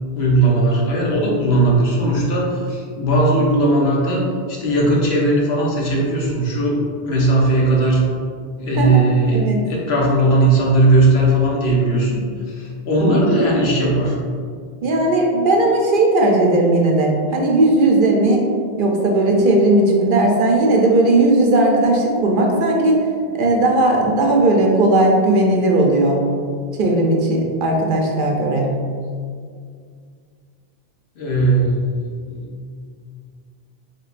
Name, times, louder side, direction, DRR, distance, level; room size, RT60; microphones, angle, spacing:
voice 1, 0.1-8.1 8.6-12.2 12.5-14.2 31.2-32.4, right 2 dB, 85° left, -3 dB, 1.1 m, -18 dB
voice 2, 13.0-13.4 14.8-18.4 18.8-23.0 23.3-26.2 26.8-28.7, right 2 dB, 60° right, 0 dB, 0.7 m, -16 dB
4.5 x 3.5 x 2.4 m, 2.1 s
omnidirectional pair, 1.0 m